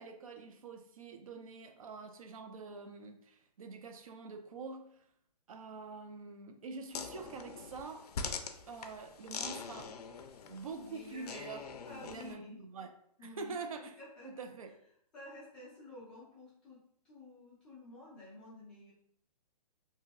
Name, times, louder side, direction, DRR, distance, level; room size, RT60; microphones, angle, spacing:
voice 1, 0.0-5.0 5.5-8.1 8.7-9.9 10.5-11.6 12.1-12.9 13.2-13.9 14.2-14.7, right 4 dB, 60° right, 6 dB, 0.4 m, -45 dB
sound 1, 6.9-12.3, left 5 dB, 70° left, 0.4 m, -43 dB
voice 2, 10.7-11.3 11.8-12.6 13.2-14.4 15.1-18.9, left 2 dB, 5° left, -10 dB, 0.4 m, -52 dB
2.9 x 2.7 x 2.4 m, 0.69 s
hypercardioid pair, 165°, 21 cm